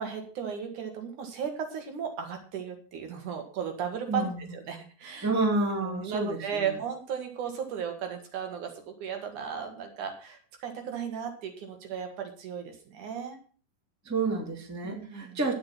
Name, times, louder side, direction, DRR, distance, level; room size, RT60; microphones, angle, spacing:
voice 1, 0.0-5.3 5.8-13.4 14.8-15.4, right 7 dB, 60° right, 5 dB, 3.0 m, -35 dB
voice 2, 5.2-6.7 14.0-15.5, right 2 dB, 5° right, 2 dB, 1.5 m, -29 dB
11.0 x 8.3 x 5.9 m, 0.40 s
omnidirectional pair, 4.2 m